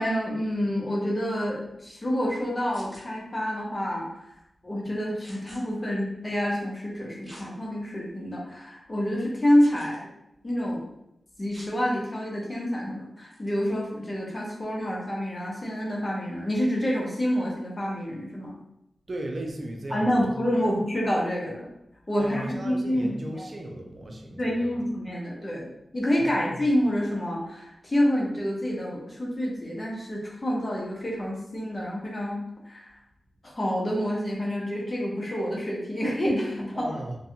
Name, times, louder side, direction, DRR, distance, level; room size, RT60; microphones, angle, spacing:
voice 1, 0.0-4.3 4.6-10.1 10.4-10.8 11.4-18.5 19.9-21.7 22.1-23.4 24.4-25.7 25.9-32.4 32.7-33.0 33.4-37.0, equal, 30° left, -3 dB, 0.7 m, -28 dB
sound 1, 2.7-3.0 5.2-5.6 7.2-7.5 8.1-8.2 9.6-10.0 11.5-11.7 13.3-13.5, equal, 15° right, 1.3 m, -48 dB
voice 2, 19.1-20.8 22.2-24.8 26.2-26.6 36.7-37.2, right 1 dB, 50° right, 1 dB, 0.5 m, -36 dB
2.5 x 2.3 x 2.7 m, 0.82 s
cardioid pair, 65°, 0 cm